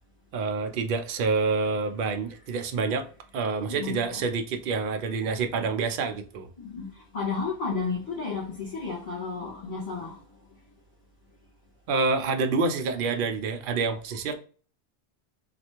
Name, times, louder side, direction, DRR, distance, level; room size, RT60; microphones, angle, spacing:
voice 1, 0.3-3.1 3.3-6.5 11.9-14.4, right 4 dB, 60° right, 0.7 m, -27 dB
voice 2, 3.7-4.2 6.6-10.2, left 4 dB, 55° left, 1.7 m, -32 dB
3.2 x 2.5 x 2.9 m
omnidirectional pair, 1.1 m